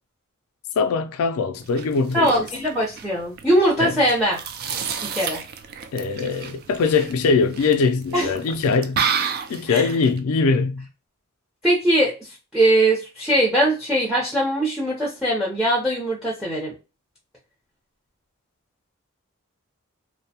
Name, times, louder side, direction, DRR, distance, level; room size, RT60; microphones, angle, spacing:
voice 1, 0.8-2.4 3.8-4.0 5.9-9.0 9.5-10.9, left 4 dB, 85° left, 0.3 m, -22 dB
sound 1, 1.6-10.2, right 6 dB, 50° right, 0.3 m, -31 dB
voice 2, 2.1-4.4 5.0-5.4 8.1-8.3 9.7-9.9 11.6-12.1 12.5-16.7, right 1 dB, ahead, 0.6 m, -21 dB
2.6 x 2.0 x 2.7 m
head